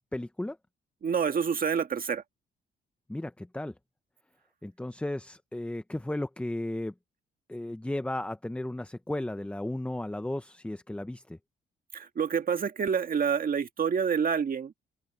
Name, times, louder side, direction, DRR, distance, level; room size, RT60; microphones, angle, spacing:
voice 1, 0.1-0.6 3.1-3.8 4.6-6.9 7.5-11.4, left 1 dB, 5° left, 0.7 m, -34 dB
voice 2, 1.0-2.2 11.9-14.7, right 7 dB, 45° right, 1.7 m, -27 dB
open air
cardioid pair, 90°, 20 cm